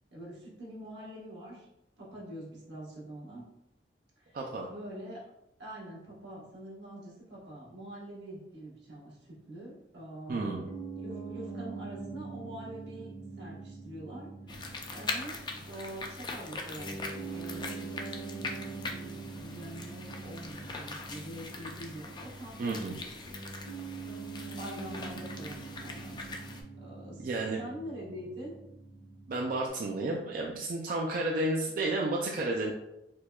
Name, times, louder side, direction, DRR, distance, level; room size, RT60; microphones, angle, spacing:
voice 1, 0.1-1.7 2.0-3.5 4.2-4.4 4.6-5.2 5.6-10.6 10.9-18.2 18.8-23.1 24.5-26.4 26.8-27.3 27.6-28.5, right 1 dB, 85° right, -6 dB, 1.3 m, -45 dB
voice 2, 4.3-4.7 10.3-10.6 22.6-23.0 27.2-27.6 29.3-32.7, right 2 dB, 50° right, -1 dB, 0.3 m, -31 dB
Piano, 10.3-29.7, right 4 dB, 80° left, 1.2 m, -44 dB
sound 1, 14.5-26.6, left 3 dB, 25° left, 0.3 m, -42 dB
4.4 x 2.2 x 2.3 m, 0.89 s
head